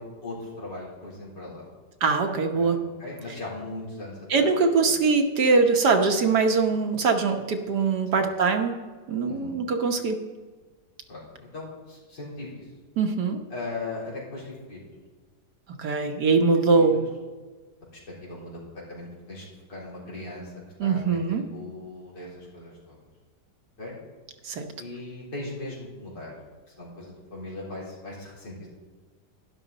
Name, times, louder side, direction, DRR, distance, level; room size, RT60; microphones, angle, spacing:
voice 1, 0.0-1.7 2.5-2.7 3.0-4.5 8.1-8.2 9.2-9.5 11.1-12.6 13.5-14.8 16.8-17.0 18.2-18.6 18.9-20.5 20.8-23.0 23.8-24.0 24.8-26.3 26.8-28.7, left 2 dB, 90° left, -6 dB, 4.5 m, -38 dB
voice 2, 2.0-2.8 4.3-8.7 9.1-10.2 13.0-13.4 15.8-17.0 20.8-21.4 24.4-24.6, right 4 dB, 75° right, 5 dB, 1.6 m, -22 dB
12.0 x 11.0 x 4.0 m, 1.4 s
omnidirectional pair, 1.8 m